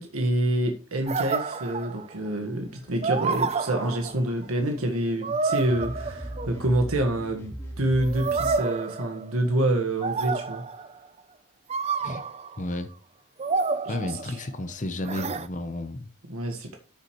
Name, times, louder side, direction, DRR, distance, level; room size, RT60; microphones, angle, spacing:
voice 1, 0.0-10.6 13.8-14.4 16.3-16.8, right 1 dB, 85° right, 1.5 m, -27 dB
sound 1, 1.1-2.3 3.0-4.4 5.2-6.7 8.0-9.6 10.0-11.0 11.7-12.6 13.4-14.5 15.0-15.5, right 4 dB, 30° right, 0.5 m, -29 dB
sound 2, 2.7-8.6, right 1 dB, 15° left, 2.9 m, -40 dB
voice 2, 12.6-12.9 13.9-16.1, left 1 dB, 35° left, 0.8 m, -32 dB
12.5 x 6.8 x 3.1 m
head